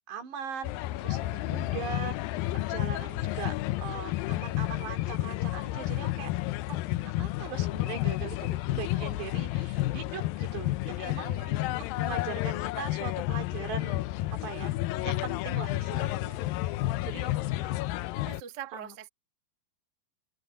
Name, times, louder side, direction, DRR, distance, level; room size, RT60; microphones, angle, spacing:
voice 1, 0.1-2.2 2.5-6.3 6.7-11.3 11.7-14.0 14.4-14.8 15.0-16.8 17.0-17.3 18.7-18.9, right 6 dB, 90° right, 6.1 m, -40 dB
sound 1, 0.6-18.4, left 16 dB, 80° left, 2.1 m, -31 dB
voice 2, 8.8-9.3 11.1-11.7 17.2-17.8 18.1-19.1, right 9 dB, 40° right, 1.5 m, -45 dB
omnidirectional pair, 4.8 m